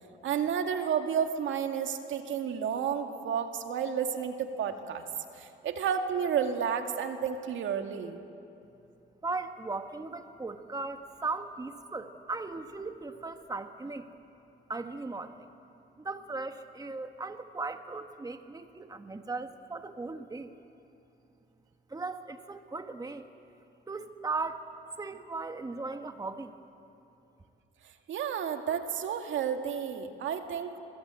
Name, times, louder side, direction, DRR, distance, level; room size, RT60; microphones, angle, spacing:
voice 1, 0.2-5.0 5.4-8.2 28.1-30.8, right 7 dB, 75° right, 5 dB, 2.1 m, -31 dB
voice 2, 9.2-14.1 14.7-15.5 16.0-20.5 21.9-23.3 23.9-24.7 25.0-26.5, right 3 dB, 20° right, 7 dB, 1.4 m, -37 dB
26.0 x 23.0 x 9.1 m, 2.7 s
cardioid pair, 90°, 20 cm